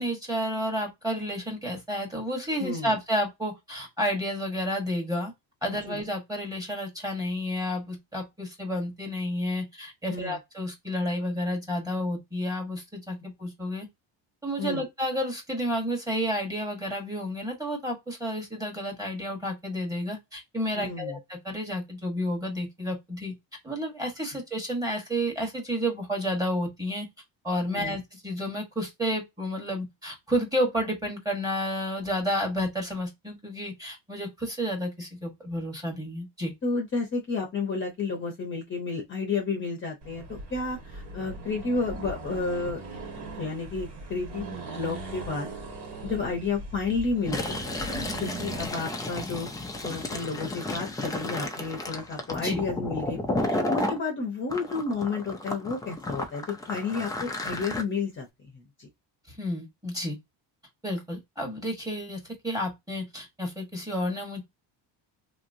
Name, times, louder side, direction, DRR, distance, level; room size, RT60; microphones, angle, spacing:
voice 1, 0.0-5.3 5.6-13.9 14.4-23.3 23.6-27.1 27.4-36.5 52.4-52.6 59.3-60.1 60.8-64.4, equal, 10° right, 1.3 m, -31 dB
voice 2, 2.6-2.9 5.9-6.0 10.1-10.4 14.6-14.8 20.7-21.2 27.7-28.0 36.6-42.8 43.1-45.5 46.0-58.3 58.5-58.9, left 4 dB, 25° left, 0.8 m, -31 dB
Accelerating revving vroom, 40.0-48.7, right 3 dB, 60° right, 1.6 m, -40 dB
Fill (with liquid), 47.2-54.0 54.5-57.8, left 2 dB, 10° left, 0.4 m, -32 dB
2.9 x 2.9 x 2.6 m
cardioid pair, 135°, 45 cm